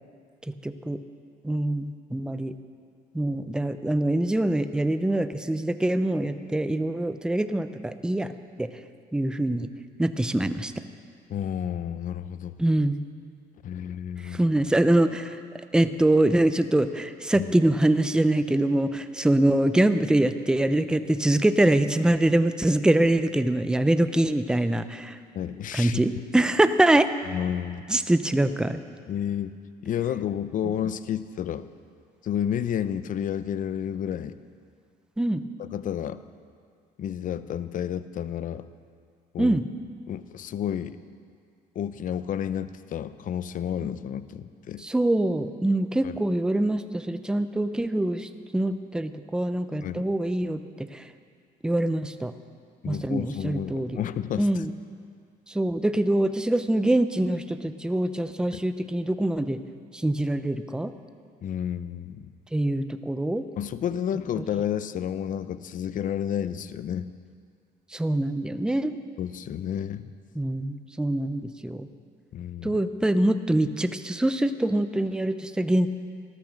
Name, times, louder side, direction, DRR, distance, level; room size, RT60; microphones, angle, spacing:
voice 1, 0.4-1.0 1.4-2.5 3.1-8.3 8.6-8.7 9.1-9.7 10.0-10.7 12.6-13.0 14.2-15.4 15.7-25.2 25.7-27.1 27.9-28.8 35.2-35.4 39.4-39.6 44.8-51.1 51.6-52.3 52.8-54.0 54.4-54.7 55.5-59.6 59.9-60.9 62.5-63.4 67.9-69.0 70.4-71.9 72.6-75.9, right 1 dB, 5° right, 10 dB, 0.6 m, -24 dB
voice 2, 11.3-12.6 13.6-14.4 17.3-17.5 25.3-26.0 27.3-27.8 29.1-29.5 29.8-31.7 32.2-34.4 35.6-36.2 37.0-38.7 39.3-39.6 40.1-41.0 41.7-44.8 46.0-46.1 49.8-50.1 52.8-54.6 58.5-58.6 61.4-62.3 63.6-67.1 69.2-70.1 72.3-72.8, left 9 dB, 50° left, 13 dB, 0.6 m, -31 dB
14.5 x 12.5 x 6.4 m, 2.2 s
cardioid pair, 110°, 17 cm